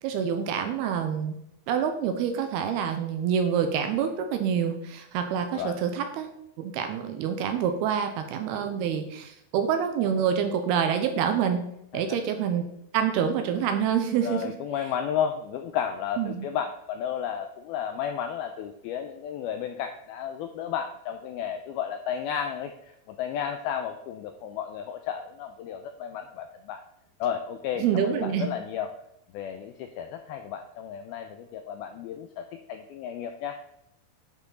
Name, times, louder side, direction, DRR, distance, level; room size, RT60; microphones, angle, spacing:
voice 1, 0.0-1.4 1.7-6.3 6.6-11.6 11.9-12.7 12.9-14.5 16.2-16.5 27.8-28.5, right 8 dB, 80° right, 6 dB, 2.5 m, -27 dB
voice 2, 14.2-26.8 27.2-28.9 29.3-33.6, left 8 dB, 85° left, 7 dB, 2.1 m, -33 dB
11.5 x 5.8 x 3.9 m, 0.76 s
omnidirectional pair, 5.0 m